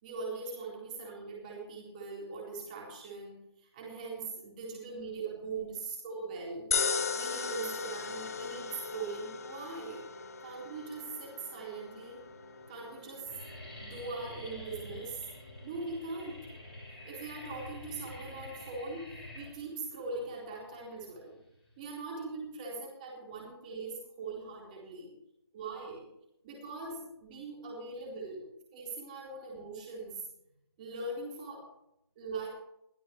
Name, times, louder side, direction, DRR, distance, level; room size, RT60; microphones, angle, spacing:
voice 1, 0.0-6.7 7.2-10.0 10.4-12.2 12.7-13.3 13.8-15.2 15.6-16.4 16.9-21.4 21.8-25.1 25.5-26.1 26.4-28.5 28.7-30.2 30.8-31.6 32.2-32.5, right 3 dB, 20° right, -2 dB, 4.0 m, -41 dB
sound 1, 6.7-19.0, left 5 dB, 35° left, 1.4 m, -39 dB
sound 2, 10.6-11.2 11.9-12.0 12.3-12.6 12.9-21.8, left 1 dB, 5° left, 5.0 m, -48 dB
22.5 x 11.5 x 3.2 m, 0.82 s
figure-of-eight pair, 165°, 14 cm